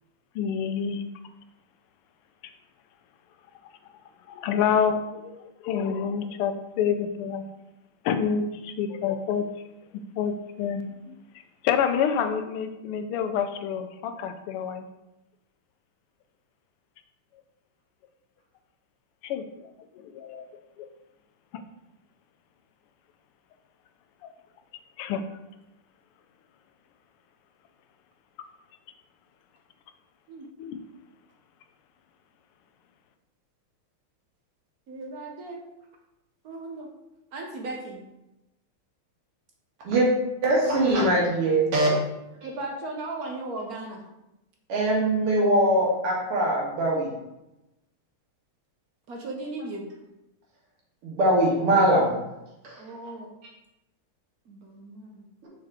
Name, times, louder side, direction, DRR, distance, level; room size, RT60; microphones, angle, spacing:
voice 1, 0.3-1.0 4.3-7.5 8.0-9.5 10.2-11.1 11.6-14.9 19.2-19.7 19.9-20.4 20.8-20.9 21.5-21.6 24.2-24.3 25.0-25.2 30.6-30.8, left 7 dB, 85° left, 8 dB, 1.5 m, -28 dB
voice 2, 34.9-35.6 36.4-36.9 37.3-38.0 42.4-44.0 49.1-49.9 52.8-53.3 54.5-55.3, right 2 dB, 60° right, 1 dB, 1.0 m, -36 dB
voice 3, 40.4-41.9 44.7-47.1 51.0-52.1 52.6-52.8, right 1 dB, 85° right, -3 dB, 2.6 m, -22 dB
6.4 x 4.4 x 3.6 m, 0.94 s
omnidirectional pair, 2.4 m